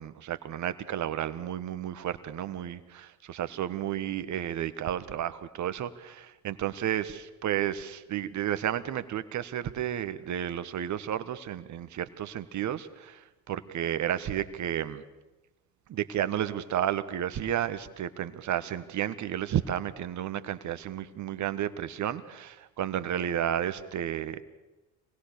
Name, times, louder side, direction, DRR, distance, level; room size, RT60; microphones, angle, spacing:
voice 1, 0.0-15.0 15.9-24.4, right 10 dB, 45° right, 13 dB, 1.6 m, -32 dB
26.5 x 20.0 x 6.8 m, 1.1 s
hypercardioid pair, 75°, 40 cm